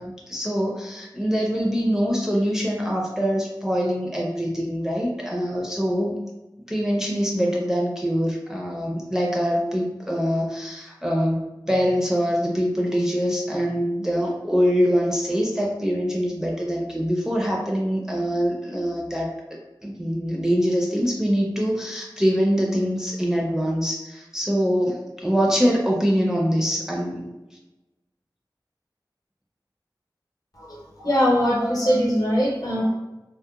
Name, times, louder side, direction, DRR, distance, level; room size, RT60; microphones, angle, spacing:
voice 1, 0.0-6.1 6.7-19.3 19.8-27.3, equal, 5° right, -3 dB, 0.4 m, -24 dB
voice 2, 30.5-32.8, equal, 50° left, -4 dB, 0.8 m, -22 dB
2.8 x 2.0 x 2.3 m, 1.0 s
wide cardioid pair, 55°, 8 cm